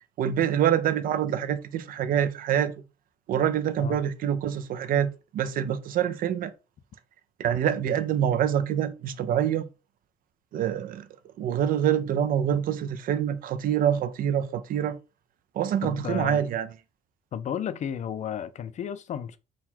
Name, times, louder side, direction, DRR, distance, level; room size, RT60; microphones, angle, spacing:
voice 1, 0.2-2.7 3.3-6.5 7.4-9.7 10.5-11.1 11.4-15.0 15.6-16.7, right 9 dB, 55° right, 0.5 m, -26 dB
voice 2, 15.8-16.4 17.3-19.4, left 9 dB, 45° left, 0.5 m, -33 dB
4.0 x 2.3 x 4.3 m
cardioid pair, 110°, 17 cm